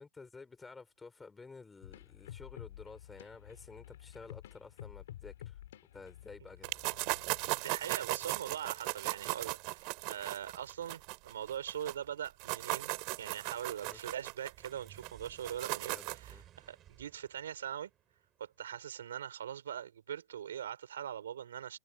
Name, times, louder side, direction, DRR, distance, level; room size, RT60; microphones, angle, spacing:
voice 1, 0.0-5.6 5.9-6.8 13.8-14.0 15.8-16.4, left 4 dB, 10° left, 4.2 m, -52 dB
sound 1, 1.8-7.5, left 12 dB, 70° left, 5.1 m, -51 dB
sound 2, 6.6-11.9 12.3-16.3, right 30 dB, 45° right, 3.4 m, -37 dB
voice 2, 7.5-12.9 13.2-17.9 18.4-21.8, right 9 dB, 80° right, 4.6 m, -42 dB
sound 3, 14.4-18.8, right 11 dB, 25° right, 7.5 m, -59 dB
hypercardioid pair, 135°, 0 cm